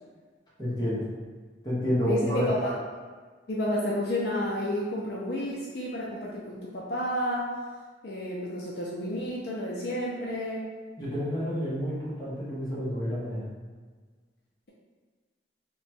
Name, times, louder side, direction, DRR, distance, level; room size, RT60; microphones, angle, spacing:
voice 1, 0.6-1.1 1.6-2.5 11.0-13.5, equal, 20° left, -8 dB, 0.9 m, -29 dB
voice 2, 2.1-2.8 3.5-7.5 8.0-10.7, left 1 dB, 55° left, -5 dB, 0.5 m, -31 dB
2.9 x 2.2 x 4.2 m, 1.5 s
head